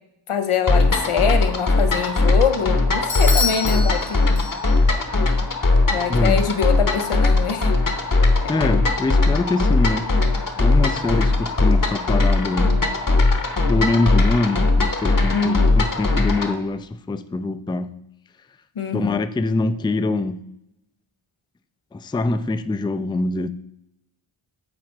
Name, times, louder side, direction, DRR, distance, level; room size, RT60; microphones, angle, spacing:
voice 1, 0.3-4.2 5.9-7.7 15.3-15.8 18.8-19.3, left 7 dB, 90° left, 0.8 m, -24 dB
sound 1, 0.7-16.5, left 2 dB, 40° left, 1.0 m, -19 dB
Bell / Doorbell, 3.1-4.9, left 3 dB, 60° left, 1.3 m, -27 dB
voice 2, 6.1-6.5 8.5-10.1 10.6-12.8 13.7-18.0 18.9-20.5 21.9-23.5, left 2 dB, 10° left, 0.3 m, -24 dB
7.7 x 4.2 x 4.6 m
wide cardioid pair, 45°, 50 cm